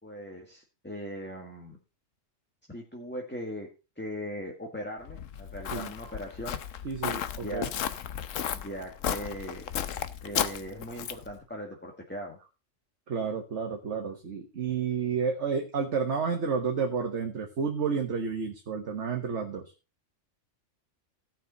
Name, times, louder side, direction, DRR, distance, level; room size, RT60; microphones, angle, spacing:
voice 1, 0.0-1.8 2.7-3.7 4.0-6.6 7.4-7.7 8.5-9.6 10.2-12.4, equal, 10° left, 1 dB, 1.8 m, -39 dB
Walk footsteps, 5.1-11.3, left 9 dB, 75° left, 1.2 m, -34 dB
voice 2, 5.7-6.1 6.8-7.7 13.1-19.7, right 5 dB, 60° right, 3 dB, 1.6 m, -31 dB
16.5 x 6.0 x 4.1 m, 0.30 s
omnidirectional pair, 1.3 m